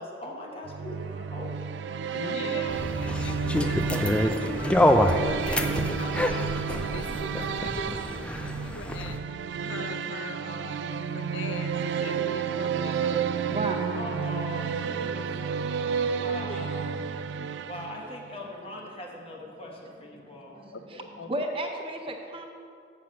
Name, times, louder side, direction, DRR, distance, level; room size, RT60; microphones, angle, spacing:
voice 1, 0.0-1.6 13.9-17.0 17.6-20.6, left 1 dB, 30° left, -1 dB, 1.0 m, -40 dB
sound 1, 0.6-18.4, right 6 dB, 70° right, 0.3 m, -31 dB
voice 2, 2.1-9.2 9.6-10.8 11.1-11.7 12.0-13.2 13.6-13.9 16.4-16.6 20.7-21.3, left 4 dB, 85° left, 8 dB, 0.6 m, -41 dB
sound 2, 2.7-9.2, left 1 dB, 5° left, 0.3 m, -26 dB
voice 3, 13.5-14.0 16.5-16.6 20.2-20.7 21.3-22.5, right 1 dB, 30° right, 3 dB, 0.7 m, -33 dB
7.4 x 5.8 x 6.2 m, 2.3 s
head